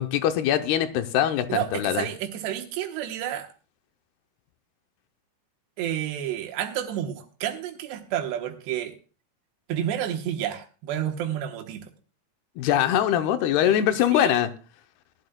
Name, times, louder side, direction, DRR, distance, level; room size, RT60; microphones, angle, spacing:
voice 1, 0.0-2.1 12.6-14.5, left 10 dB, 80° left, 9 dB, 2.7 m, -22 dB
voice 2, 1.5-3.5 5.8-9.0 9.7-11.8 13.6-13.8 14.1-14.4, right 11 dB, 90° right, 5 dB, 3.3 m, -30 dB
20.0 x 11.5 x 2.3 m, 0.35 s
omnidirectional pair, 4.7 m